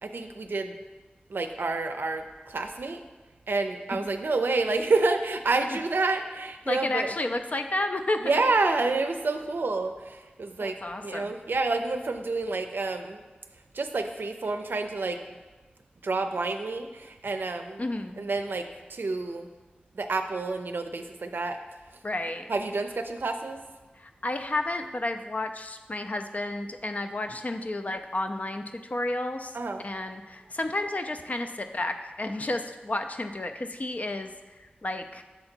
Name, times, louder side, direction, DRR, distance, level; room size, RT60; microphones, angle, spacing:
voice 1, 0.0-0.8 1.3-3.0 3.5-7.1 8.2-13.2 13.7-15.2 16.0-17.8 18.2-18.6 18.9-19.5 19.9-21.6 22.5-23.6 29.5-29.8, right 3 dB, 80° right, 6 dB, 0.5 m, -28 dB
voice 2, 6.7-8.2 10.6-11.3 17.8-18.2 22.0-22.5 24.0-29.6 29.8-34.3 34.6-35.2, left 2 dB, 45° left, 6 dB, 0.4 m, -31 dB
6.8 x 3.8 x 4.4 m, 1.3 s
wide cardioid pair, 75°, 3 cm